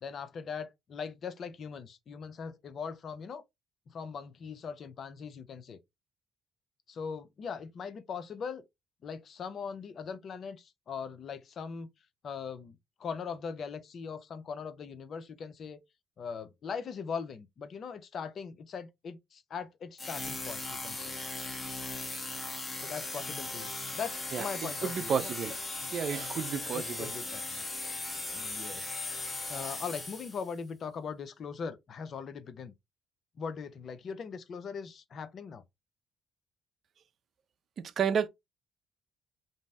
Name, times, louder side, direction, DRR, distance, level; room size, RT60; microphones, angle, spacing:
voice 1, 0.0-3.4 3.9-5.8 6.9-8.6 9.0-11.9 12.2-15.8 16.2-21.1 22.8-23.7 23.9-25.3 25.8-25.9 26.2-26.3 26.7-27.6 28.3-29.2 29.5-32.7 33.4-35.6, left 6 dB, 55° left, 0.5 m, -40 dB
sound 1, 20.0-30.5, left 2 dB, 25° left, 0.9 m, -38 dB
voice 2, 24.8-25.5 25.9-27.1 37.8-38.3, right 7 dB, 55° right, 0.4 m, -31 dB
2.6 x 2.0 x 3.4 m
cardioid pair, 80°, 0 cm